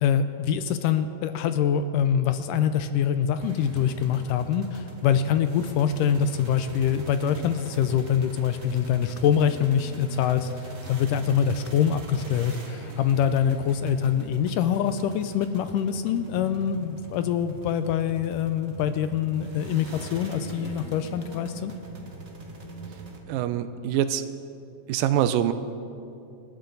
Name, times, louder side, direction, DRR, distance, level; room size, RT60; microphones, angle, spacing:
voice 1, 0.0-21.7, left 8 dB, 80° left, 10 dB, 2.1 m, -24 dB
sound 1, 3.4-23.2, right 3 dB, 35° right, 1.3 m, -42 dB
voice 2, 23.3-24.2 24.9-25.5, right 11 dB, 85° right, 11 dB, 2.3 m, -24 dB
25.5 x 12.5 x 3.9 m, 2.6 s
omnidirectional pair, 4.1 m